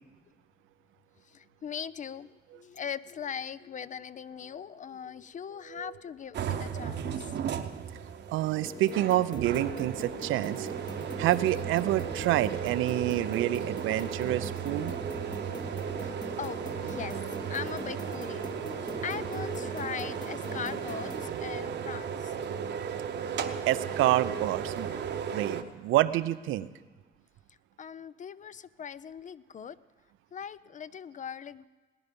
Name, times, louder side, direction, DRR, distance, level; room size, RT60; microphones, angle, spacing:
voice 1, 1.2-7.4 15.7-17.2 17.5-18.5 19.0-22.3 27.5-29.8 30.3-31.7, left 8 dB, 40° left, 17 dB, 0.5 m, -40 dB
sound 1, 6.3-25.6, right 8 dB, 60° right, 0.9 m, -35 dB
voice 2, 8.3-14.9 23.7-24.9 25.3-26.7, right 14 dB, 90° right, 14 dB, 0.5 m, -28 dB
sound 2, 8.6-21.3, left 2 dB, 20° left, 0.9 m, -43 dB
19.0 x 10.0 x 5.3 m, 1.4 s
cardioid pair, 90°, 20 cm